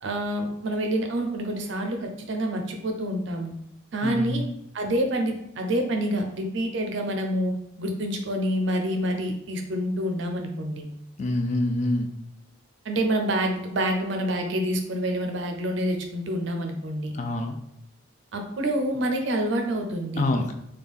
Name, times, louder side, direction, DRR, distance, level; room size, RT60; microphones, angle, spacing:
voice 1, 0.0-3.5 3.9-4.4 4.7-7.5 7.8-10.9 12.8-17.1 18.3-20.2, right 1 dB, 60° right, 4 dB, 0.5 m, -27 dB
voice 2, 4.0-4.4 11.2-12.1 17.1-17.6 20.2-20.5, left 2 dB, 35° left, 5 dB, 0.3 m, -26 dB
3.3 x 2.3 x 3.5 m, 0.78 s
head